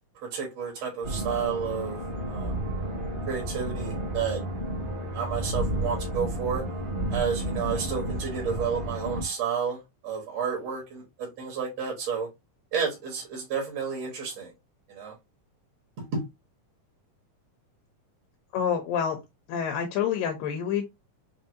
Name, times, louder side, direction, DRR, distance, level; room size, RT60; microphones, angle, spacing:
voice 1, 0.2-2.0 2.3-2.5 3.3-4.4 5.1-6.6 7.1-12.3 12.7-14.5 14.9-15.1 16.1-16.2, right 6 dB, 55° right, 2.2 m, -31 dB
sound 1, 1.0-9.2, right 1 dB, 40° right, 1.3 m, -32 dB
voice 2, 18.5-19.2 19.5-20.9, left 8 dB, 85° left, 2.5 m, -27 dB
5.8 x 2.7 x 2.6 m
omnidirectional pair, 4.0 m